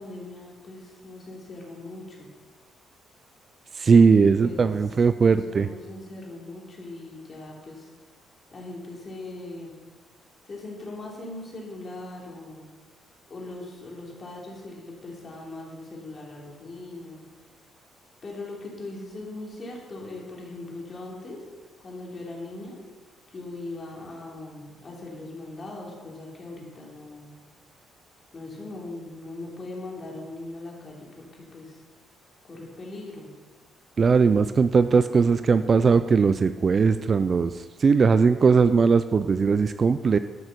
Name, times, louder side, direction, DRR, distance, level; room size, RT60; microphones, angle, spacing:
voice 1, 0.0-2.3 4.1-4.7 5.2-7.9 8.5-9.7 10.5-12.7 13.3-17.2 18.2-21.4 21.8-22.8 23.3-27.3 28.3-31.8 32.4-33.3, left 2 dB, 30° left, -2 dB, 3.1 m, -40 dB
voice 2, 3.8-5.7 34.0-40.2, right 5 dB, 30° right, 12 dB, 0.3 m, -19 dB
11.5 x 8.2 x 6.7 m, 1.3 s
cardioid pair, 155°, 0 cm